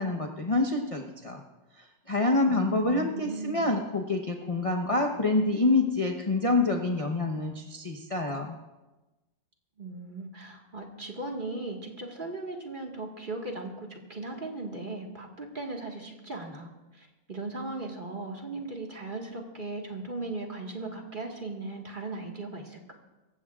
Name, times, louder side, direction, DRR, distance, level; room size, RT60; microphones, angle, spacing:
voice 1, 0.0-1.4 2.1-8.5, left 2 dB, 30° left, 2 dB, 0.6 m, -27 dB
voice 2, 2.4-3.7 9.8-22.9, right 2 dB, 30° right, 0 dB, 1.7 m, -38 dB
25.0 x 15.0 x 2.4 m, 1.1 s
omnidirectional pair, 2.0 m